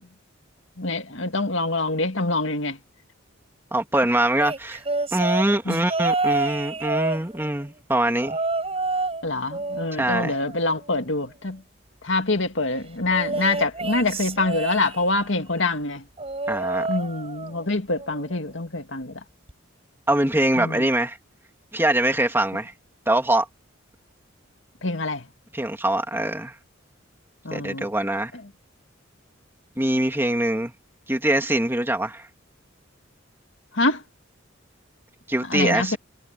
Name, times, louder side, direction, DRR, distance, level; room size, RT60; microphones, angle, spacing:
voice 1, 0.8-2.8 5.7-5.8 9.2-11.6 12.0-16.0 16.9-19.1 20.6-20.8 24.8-25.3 27.4-27.9 33.7-34.0 35.5-36.0, left 2 dB, 70° left, 2.3 m, -25 dB
voice 2, 3.7-4.8 5.1-8.4 10.0-10.4 16.5-16.9 20.1-21.2 21.7-22.7 23.1-23.5 25.5-26.5 27.5-28.3 29.8-30.7 31.1-32.3 35.3-36.0, right 1 dB, 10° right, 2.5 m, -23 dB
sound 1, 4.4-7.7 8.2-9.2 9.5-11.1 13.1-15.3 16.2-17.7 18.0-18.4 19.5-19.6, right 3 dB, 30° right, 7.6 m, -29 dB
head